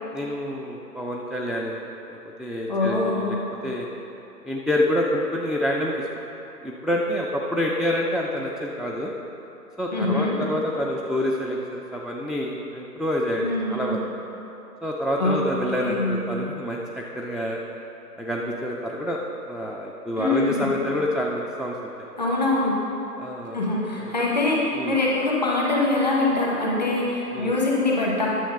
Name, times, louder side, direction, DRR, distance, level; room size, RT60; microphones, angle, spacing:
voice 1, 0.1-3.4 3.6-3.9 4.4-6.1 6.6-9.1 9.8-14.0 14.8-17.6 18.2-19.2 19.5-22.1 23.2-23.6 24.0-24.1 24.7-24.9 27.3-27.5, left 1 dB, ahead, -2 dB, 0.3 m, -27 dB
voice 2, 2.7-3.4 9.9-10.4 13.4-14.0 15.2-15.4 15.8-16.2 20.2-20.7 22.2-22.8 23.5-28.3, left 2 dB, 25° left, -4 dB, 1.2 m, -23 dB
9.9 x 7.2 x 5.4 m, 3.0 s
hypercardioid pair, 170°, 48 cm